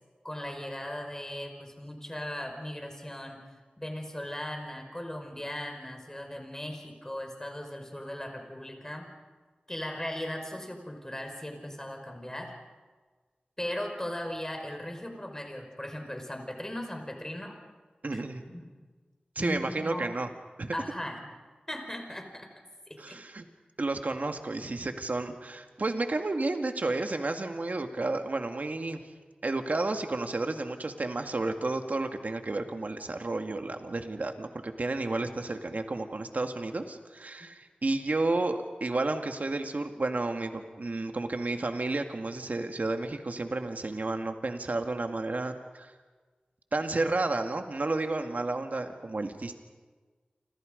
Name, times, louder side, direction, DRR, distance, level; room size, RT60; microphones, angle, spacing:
voice 1, 0.2-3.4 3.8-9.1 9.7-12.6 13.6-17.6 18.1-18.7 19.4-20.2 20.7-21.2 21.7-22.5 22.9-23.2, left 1 dB, 15° left, 4 dB, 5.2 m, -38 dB
voice 2, 18.0-18.4 19.4-20.3 20.6-20.7 23.0-23.4 23.8-29.0 29.4-45.9 46.7-49.6, right 2 dB, 65° right, 5 dB, 2.1 m, -31 dB
29.5 x 26.5 x 5.3 m, 1.4 s
wide cardioid pair, 65°, 3 cm